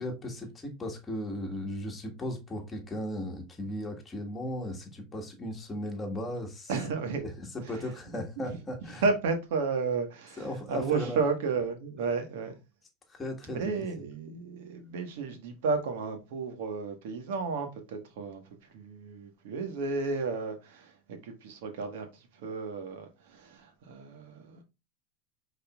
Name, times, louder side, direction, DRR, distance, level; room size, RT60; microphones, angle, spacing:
voice 1, 0.0-6.7 7.2-9.0 10.4-11.2 13.1-13.7, left 1 dB, 15° left, 1.6 m, -36 dB
voice 2, 6.7-7.2 7.6-7.7 8.1-8.2 8.5-8.6 8.9-12.6 13.5-18.4 18.7-24.6, right 4 dB, 80° right, 1.4 m, -33 dB
5.3 x 4.0 x 2.3 m
supercardioid pair, 125°, 0 cm